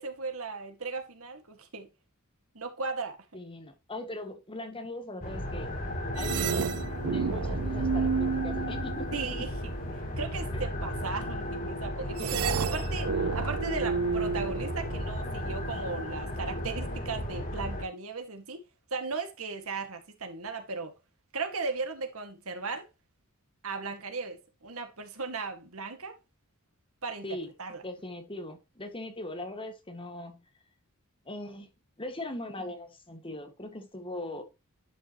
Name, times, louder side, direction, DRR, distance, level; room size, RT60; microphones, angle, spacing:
voice 1, 0.0-1.9 2.5-3.2 9.1-12.3 12.7-13.1 13.3-18.6 18.9-20.9 21.3-22.9 23.6-24.4 24.6-26.1 27.0-27.3 27.6-27.8, right 4 dB, 75° right, 2.0 m, -36 dB
voice 2, 3.3-5.7 6.1-6.7 7.0-9.1 10.5-10.7 12.2-13.3 27.2-27.5 27.8-30.4 31.3-31.7 32.0-34.4, left 1 dB, 25° left, 1.8 m, -40 dB
sound 1, 5.2-17.8, equal, 40° left, 5.0 m, -34 dB
sound 2, 6.2-9.4 12.2-15.3, right 6 dB, 90° right, 0.6 m, -31 dB
11.0 x 5.7 x 3.0 m
head